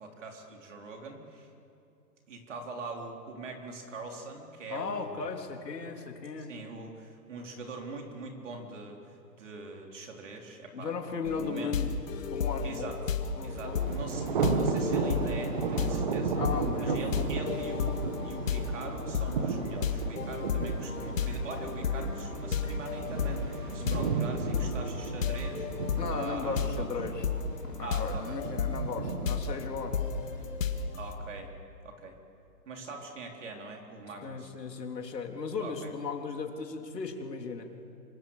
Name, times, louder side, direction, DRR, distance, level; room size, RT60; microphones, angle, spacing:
voice 1, 0.0-1.5 2.3-5.2 6.4-11.0 11.3-11.7 12.6-13.0 13.4-16.4 16.8-26.9 27.8-28.4 31.0-31.5 31.8-32.2 32.7-34.5 35.6-35.9, right 3 dB, 45° right, 2 dB, 4.1 m, -43 dB
voice 2, 4.7-6.5 10.7-11.9 12.3-12.9 13.4-13.9 16.4-17.3 23.8-24.1 26.0-27.3 27.6-30.0 34.2-37.7, left 5 dB, 75° left, 3 dB, 3.7 m, -36 dB
sound 1, 11.3-31.1, left 5 dB, 50° left, 2.2 m, -33 dB
Thunder, 13.5-30.5, right 5 dB, 30° right, 1.5 m, -34 dB
27.0 x 25.5 x 7.4 m, 2.6 s
hypercardioid pair, 170°, 49 cm